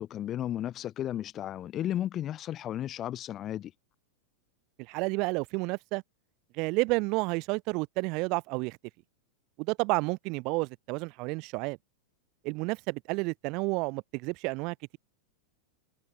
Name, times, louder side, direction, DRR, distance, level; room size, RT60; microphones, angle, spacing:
voice 1, 0.0-3.7, left 11 dB, 35° left, 4.7 m, -34 dB
voice 2, 4.9-6.0 6.6-8.8 9.6-11.8 12.4-15.0, right 27 dB, 50° right, 4.8 m, -30 dB
hypercardioid pair, 100°, 0 cm